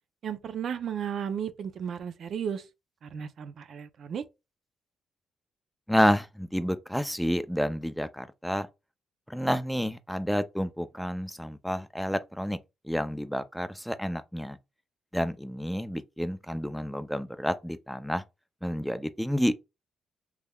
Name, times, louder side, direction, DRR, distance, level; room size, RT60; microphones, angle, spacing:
voice 1, 0.2-2.7 3.0-4.2, right 8 dB, 60° right, 0.5 m, -34 dB
voice 2, 5.9-8.7 9.3-12.6 12.8-14.6 15.1-18.2 18.6-19.5, equal, ahead, 0.4 m, -29 dB
3.6 x 3.1 x 2.3 m
cardioid pair, 90°, 0 cm